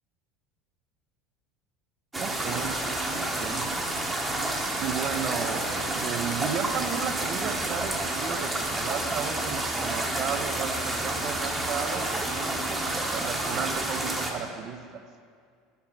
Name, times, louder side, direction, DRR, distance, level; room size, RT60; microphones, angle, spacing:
sound 1, 2.1-14.3, right 2 dB, 15° right, 0.9 m, -29 dB
voice 1, 2.1-2.8 3.1-3.7 4.8-15.0, right 7 dB, 50° right, 8 dB, 0.5 m, -34 dB
7.1 x 4.6 x 4.7 m, 2.1 s
figure-of-eight pair, 70°, 0 cm